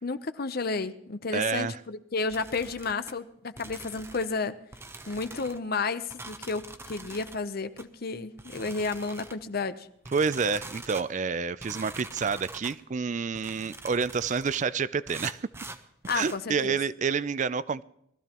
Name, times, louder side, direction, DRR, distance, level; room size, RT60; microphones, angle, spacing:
voice 1, 0.0-4.6 5.1-9.9 16.1-16.8, left 4 dB, 50° left, 11 dB, 0.7 m, -32 dB
voice 2, 1.3-1.8 10.1-15.4 16.1-17.8, right 5 dB, 35° right, 18 dB, 0.4 m, -28 dB
sound 1, 2.3-3.1 3.6-4.4 4.7-5.6 6.1-7.4 7.8-7.9 8.4-9.4 10.0-11.1 11.6-12.8 13.3-14.7 15.1-16.4, right 2 dB, 10° right, 0.8 m, -44 dB
20.5 x 14.0 x 3.0 m, 0.75 s
head